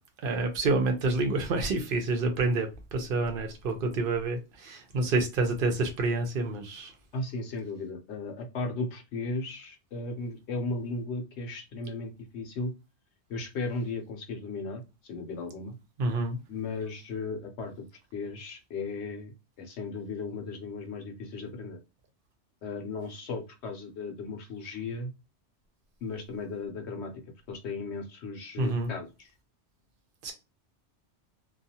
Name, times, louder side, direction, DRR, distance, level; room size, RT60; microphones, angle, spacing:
voice 1, 0.2-6.9 16.0-16.4 28.6-28.9 30.2-30.3, right 3 dB, 55° right, 0.8 m, -28 dB
voice 2, 7.1-12.7 13.3-15.7 16.5-17.9 18.1-21.8 22.6-25.1 26.0-27.1 27.5-29.3, left 3 dB, 75° left, 0.9 m, -36 dB
2.4 x 2.3 x 2.7 m
omnidirectional pair, 1.2 m